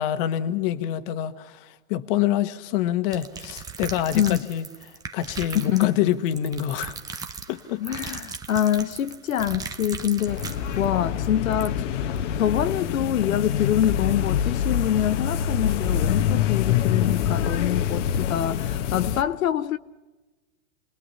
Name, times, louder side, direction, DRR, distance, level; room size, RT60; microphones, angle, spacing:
voice 1, 0.0-4.6 5.1-7.2 7.5-8.2, left 11 dB, 40° left, 1.5 m, -26 dB
sound 1, 3.1-10.9 11.2-11.3 11.6-11.7, right 5 dB, 10° right, 0.8 m, -37 dB
voice 2, 5.5-5.9 7.8-19.8, left 11 dB, 80° left, 1.0 m, -25 dB
sound 2, 10.3-19.2, left 9 dB, 60° left, 1.2 m, -25 dB
29.5 x 20.5 x 5.6 m
hypercardioid pair, 145°, 40 cm